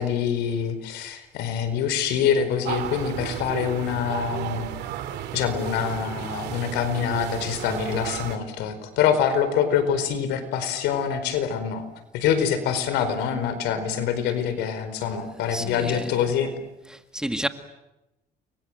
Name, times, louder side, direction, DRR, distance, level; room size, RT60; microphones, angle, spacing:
voice 1, 0.0-4.7 5.3-11.8 12.1-16.5, left 8 dB, 90° left, 4.7 m, -25 dB
sound 1, 2.6-8.4, right 11 dB, 80° right, 2.6 m, -33 dB
voice 2, 15.5-16.4 16.9-17.5, right 1 dB, 5° right, 1.9 m, -31 dB
29.5 x 24.0 x 7.9 m
cardioid pair, 110°, 17 cm